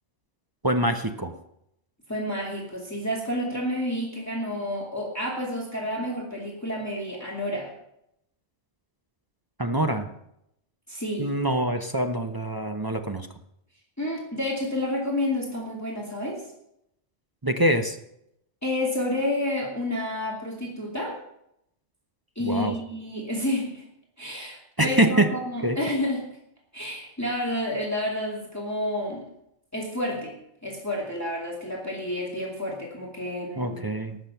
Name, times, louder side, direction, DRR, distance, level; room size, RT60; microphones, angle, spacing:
voice 1, 0.6-1.3 9.6-10.1 11.2-13.3 17.4-18.0 22.4-22.7 24.8-25.3 25.6-25.8 33.6-34.2, right 1 dB, 25° right, 6 dB, 0.7 m, -24 dB
voice 2, 2.1-7.7 10.9-11.3 14.0-16.4 18.6-21.2 22.4-23.8 24.2-26.2 26.7-29.2 29.7-30.3 30.6-33.8, left 1 dB, 15° left, -3 dB, 2.5 m, -30 dB
18.5 x 7.0 x 5.8 m, 0.79 s
omnidirectional pair, 1.1 m